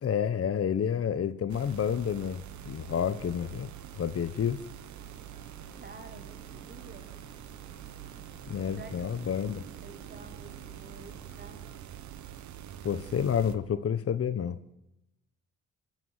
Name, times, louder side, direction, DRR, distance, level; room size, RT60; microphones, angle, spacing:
voice 1, 0.0-3.7 4.0-4.6 8.5-9.6 12.8-14.6, left 8 dB, 50° left, 1.1 m, -29 dB
sound 1, 1.5-13.6, right 11 dB, 70° right, 1.3 m, -45 dB
sound 2, 5.0-11.8, left 1 dB, 15° left, 2.3 m, -56 dB
voice 2, 5.7-7.1 8.8-9.2 9.8-11.6, right 3 dB, 35° right, 3.6 m, -50 dB
23.5 x 12.0 x 9.5 m
cardioid pair, 90°, 30 cm